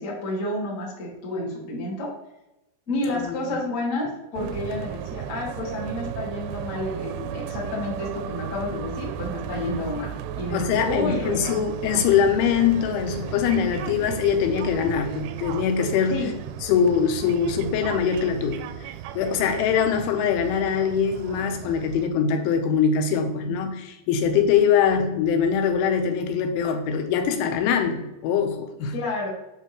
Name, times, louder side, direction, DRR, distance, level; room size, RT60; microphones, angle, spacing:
voice 1, 0.0-2.1 2.9-11.6 16.1-16.3 28.9-29.3, left 1 dB, 45° left, -5 dB, 1.0 m, -30 dB
voice 2, 3.1-3.6 9.6-9.7 10.5-16.2 16.6-28.9, left 7 dB, 90° left, 5 dB, 3.3 m, -23 dB
sound 1, 4.3-22.1, right 9 dB, 85° right, 2.4 m, -35 dB
7.8 x 5.8 x 3.1 m, 0.94 s
omnidirectional pair, 5.3 m